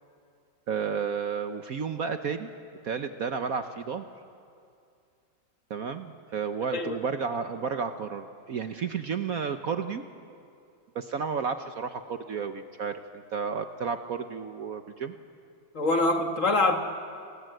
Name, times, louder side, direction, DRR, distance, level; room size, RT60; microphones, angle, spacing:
voice 1, 0.7-2.5 2.8-4.0 5.7-10.0 10.9-15.1, right 6 dB, 55° right, 8 dB, 1.2 m, -32 dB
voice 2, 15.7-16.8, left 2 dB, 45° left, 5 dB, 1.8 m, -24 dB
29.5 x 20.0 x 7.8 m, 2.4 s
omnidirectional pair, 2.1 m